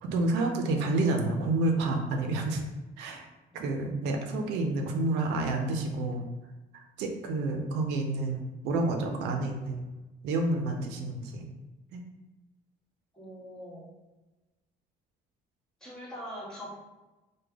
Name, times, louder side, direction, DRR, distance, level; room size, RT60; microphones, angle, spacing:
voice 1, 0.0-2.7 3.0-3.3 3.5-6.3 6.7-9.8 10.2-11.5 11.9-12.0, right 2 dB, 85° right, 3 dB, 0.5 m, -29 dB
voice 2, 13.1-13.9 15.8-16.7, equal, 5° left, -7 dB, 1.3 m, -42 dB
3.2 x 2.1 x 3.4 m, 1.1 s
cardioid pair, 110°, 17 cm